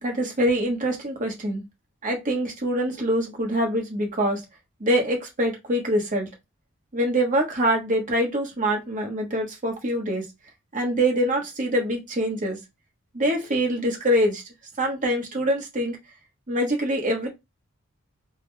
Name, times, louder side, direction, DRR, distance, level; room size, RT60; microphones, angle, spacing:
voice 1, 0.0-1.6 2.0-4.4 4.8-6.3 6.9-10.3 10.7-12.6 13.1-14.4 14.8-16.0 16.5-17.3, equal, 40° right, 1.1 m, -24 dB
3.6 x 2.2 x 3.3 m
head